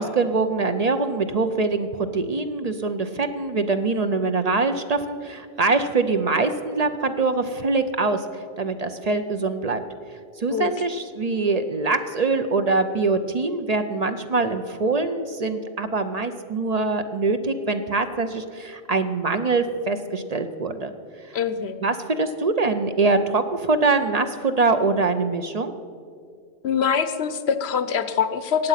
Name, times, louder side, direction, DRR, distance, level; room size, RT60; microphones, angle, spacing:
voice 1, 0.0-8.2 8.6-9.8 10.4-20.9 21.3-21.4 21.8-25.7, right 3 dB, 45° right, 8 dB, 0.7 m, -23 dB
voice 2, 21.3-21.8 26.6-28.7, left 7 dB, 85° left, 11 dB, 1.0 m, -23 dB
15.5 x 9.3 x 5.7 m, 2.2 s
omnidirectional pair, 1.1 m